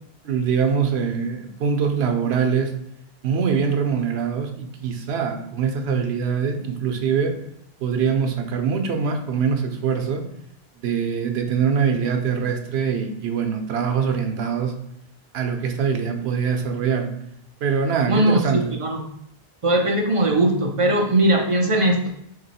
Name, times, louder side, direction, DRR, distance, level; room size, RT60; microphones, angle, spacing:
voice 1, 0.2-2.7 3.2-7.3 7.8-10.3 10.8-14.7 15.3-17.1 17.6-18.8, right 6 dB, 90° right, 5 dB, 0.9 m, -23 dB
voice 2, 18.1-19.0 19.6-22.1, right 1 dB, 40° right, 1 dB, 0.5 m, -19 dB
3.1 x 2.9 x 4.0 m, 0.75 s
omnidirectional pair, 1.1 m